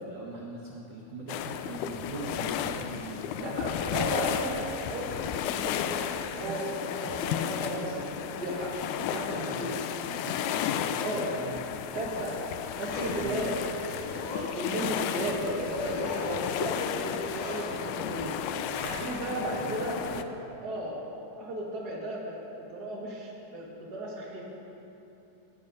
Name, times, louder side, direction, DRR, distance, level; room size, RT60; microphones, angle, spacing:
voice 1, 0.1-3.3 6.3-6.8 7.7-8.0 9.0-11.7 12.9-13.6 18.1-20.3, right 3 dB, 80° right, -3 dB, 1.0 m, -42 dB
sound 1, 1.3-20.2, left 9 dB, 85° left, 1.7 m, -33 dB
voice 2, 3.4-8.0 8.4-8.7 9.1-9.7 11.0-11.3 11.9-12.4 12.8-13.5 13.8-18.3 18.8-20.2 20.6-21.0 21.4-22.4 22.7-23.6 23.9-24.4, right 1 dB, 35° right, -4 dB, 2.2 m, -35 dB
Zipper (clothing), 11.7-19.3 19.8-19.9, left 2 dB, 65° left, 3.1 m, -40 dB
17.0 x 8.6 x 5.3 m, 3.0 s
omnidirectional pair, 4.0 m